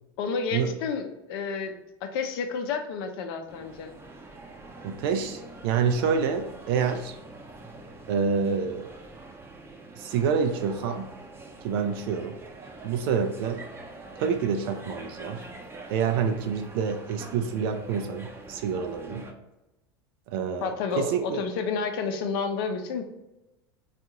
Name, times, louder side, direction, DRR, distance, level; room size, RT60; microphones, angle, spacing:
voice 1, 0.2-3.9 20.6-23.0, left 5 dB, 70° left, 6 dB, 0.6 m, -30 dB
sound 1, 3.5-19.3, right 2 dB, 20° right, 0.6 m, -45 dB
voice 2, 4.8-7.2 8.1-8.9 10.0-11.1 11.6-12.4 12.8-13.6 14.2-15.4 15.9-19.3 20.3-21.4, right 6 dB, 70° right, 6 dB, 0.4 m, -27 dB
3.6 x 2.4 x 2.8 m, 0.97 s
hypercardioid pair, 90°, 13 cm